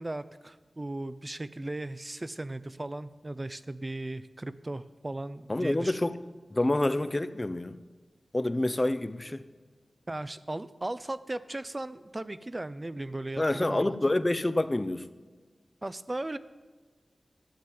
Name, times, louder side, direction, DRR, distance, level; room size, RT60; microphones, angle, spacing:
voice 1, 0.0-6.0 10.1-14.0 15.8-16.4, right 2 dB, 30° right, 0.6 m, -37 dB
voice 2, 5.5-6.2 6.5-7.8 8.3-9.4 13.4-15.1, left 1 dB, 30° left, 0.7 m, -27 dB
13.0 x 7.4 x 9.5 m
wide cardioid pair, 55°, 0 cm